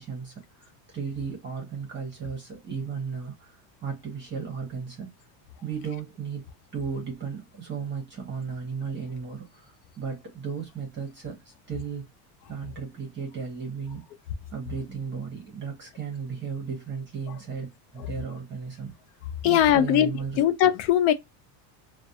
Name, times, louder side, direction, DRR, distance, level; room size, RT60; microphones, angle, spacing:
voice 1, 0.0-5.1 5.6-6.4 6.7-12.0 12.5-14.0 14.5-17.7 17.9-18.9 19.4-20.4, right 6 dB, 25° right, 0.8 m, -35 dB
voice 2, 19.4-20.1 20.4-21.1, left 11 dB, 70° left, 0.6 m, -20 dB
2.4 x 2.2 x 2.6 m
cardioid pair, 140°, 50 cm